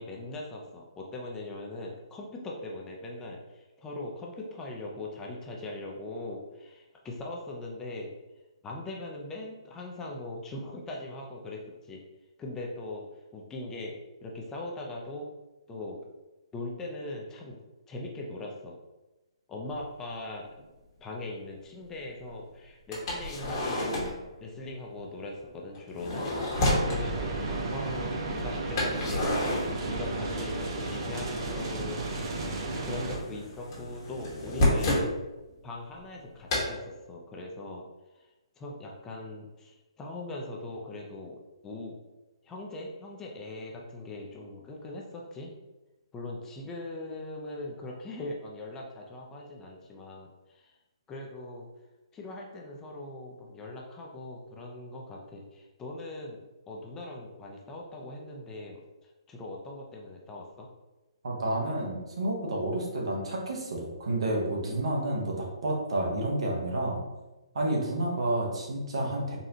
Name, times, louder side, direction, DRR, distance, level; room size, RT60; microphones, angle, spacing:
voice 1, 0.0-8.1 8.6-12.0 12.4-13.0 13.3-15.3 15.7-16.0 16.5-17.6 17.9-18.7 19.5-20.5 21.0-24.0 24.4-26.3 26.5-32.3 32.9-35.1 35.6-37.8 38.6-42.0 42.4-45.5 46.1-50.7 51.1-51.7 52.1-60.7, left 2 dB, 15° left, -1 dB, 0.5 m, -40 dB
sound 1, 19.8-19.9 20.6-20.7 22.9-24.3 25.7-27.0 28.8-30.4 30.7-31.6 31.8-35.1 36.5-36.7, left 1 dB, 40° left, 1.2 m, -30 dB
sound 2, 26.5-33.2, right 2 dB, 45° right, 0.6 m, -33 dB
voice 2, 61.2-67.0 67.5-69.4, right 1 dB, 70° right, -1 dB, 1.0 m, -30 dB
4.0 x 2.4 x 2.8 m, 1.1 s
hypercardioid pair, 140°, 3 cm